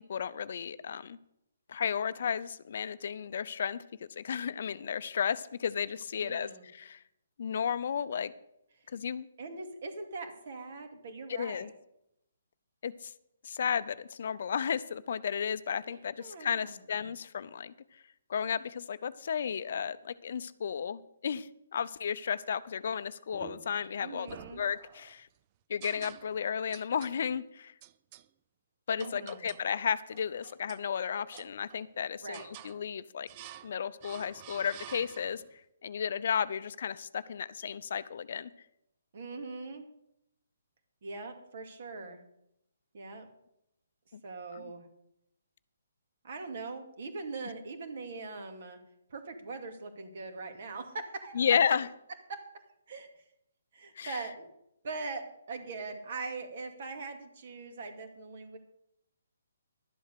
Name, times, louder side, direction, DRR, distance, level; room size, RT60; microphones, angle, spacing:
voice 1, 0.1-1.2 1.7-3.8 4.2-7.0 7.4-8.3 8.9-9.3 11.3-11.7 12.8-13.1 13.4-18.0 18.3-25.3 25.7-27.7 28.9-33.3 33.6-35.4 35.8-38.5 44.1-44.2 44.5-44.6 51.3-51.9 54.0-54.2, left 7 dB, 55° left, 15 dB, 0.6 m, -33 dB
voice 2, 6.2-6.7 9.4-11.7 15.9-16.8 24.0-24.6 29.0-29.5 32.2-32.5 39.1-39.8 41.0-42.2 42.9-43.3 44.2-44.9 46.2-48.8 49.1-51.5 52.3-52.4 52.9-53.1 53.7-54.5 54.8-58.6, right 3 dB, 50° right, 5 dB, 2.4 m, -41 dB
sound 1, 23.3-23.9 24.3-25.2 25.8-26.5 26.7-27.2 27.8-28.3 29.0-29.7 30.1-30.9 31.3-31.9 32.3-32.8 33.3-33.7 34.0-35.5, right 12 dB, 25° right, 0.4 m, -50 dB
12.0 x 7.9 x 6.8 m, 0.80 s
hypercardioid pair, 160°, 0 cm